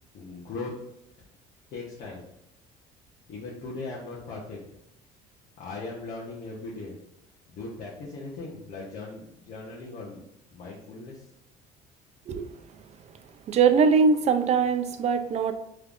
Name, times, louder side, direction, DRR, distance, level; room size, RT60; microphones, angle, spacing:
voice 1, 0.1-0.7 1.7-2.3 3.3-4.6 5.6-7.0 7.5-10.2 10.5-11.3, left 3 dB, 60° left, -4 dB, 1.0 m, -38 dB
voice 2, 13.5-15.5, right 5 dB, 45° right, 9 dB, 0.5 m, -21 dB
5.3 x 3.2 x 2.5 m, 0.82 s
cardioid pair, 105°, 16 cm